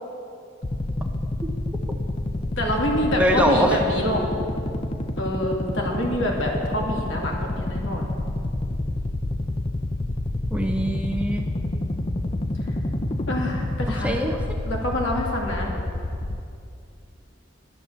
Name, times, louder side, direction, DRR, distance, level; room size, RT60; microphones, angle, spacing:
sound 1, 0.6-16.4, left 1 dB, 25° left, 0.5 m, -28 dB
voice 1, 2.6-4.2 5.2-8.1 11.4-12.1 13.3-14.2 14.6-15.7, left 1 dB, 70° left, -1 dB, 2.3 m, -27 dB
voice 2, 3.1-3.8 10.5-11.4 13.9-14.4, equal, 5° right, 2 dB, 0.7 m, -23 dB
11.0 x 10.5 x 6.8 m, 2.5 s
head